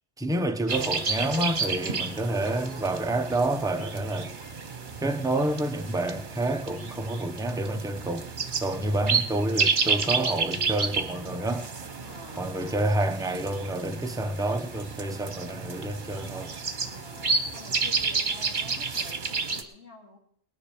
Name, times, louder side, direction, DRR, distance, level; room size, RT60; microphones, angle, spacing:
voice 1, 0.2-4.3 5.0-8.3 8.6-11.7 12.4-16.5, right 1 dB, 5° right, 0.6 m, -28 dB
sound 1, 0.7-19.6, right 4 dB, 45° right, 1.3 m, -31 dB
voice 2, 12.0-12.5 16.9-20.2, left 2 dB, 80° left, 3.3 m, -48 dB
19.0 x 10.0 x 4.9 m
omnidirectional pair, 1.2 m